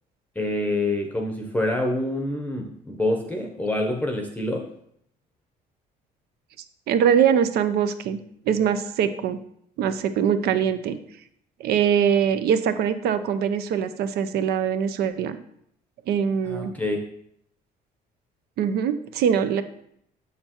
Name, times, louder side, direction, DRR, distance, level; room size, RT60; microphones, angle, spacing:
voice 1, 0.4-4.6 16.4-17.0, left 1 dB, 10° left, 2 dB, 0.7 m, -26 dB
voice 2, 6.9-8.2 8.5-9.4 9.8-11.0 11.6-15.4 16.1-16.7 18.6-19.6, right 8 dB, 70° right, 11 dB, 0.6 m, -22 dB
6.7 x 6.6 x 2.9 m, 0.70 s
cardioid pair, 110°, 17 cm